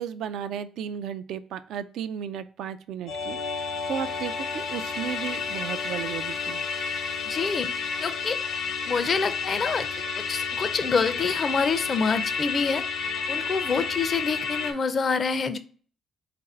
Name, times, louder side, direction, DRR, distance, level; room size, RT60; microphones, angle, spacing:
voice 1, 0.0-6.7, right 8 dB, 80° right, 11 dB, 0.3 m, -34 dB
Musical instrument, 3.1-14.7, left 5 dB, 85° left, 0.8 m, -31 dB
voice 2, 7.2-7.7 8.0-8.4 8.9-9.9 10.2-12.8 13.3-15.6, left 5 dB, 45° left, 11 dB, 0.4 m, -26 dB
3.8 x 2.5 x 4.2 m, 0.43 s
cardioid pair, 90°, 0 cm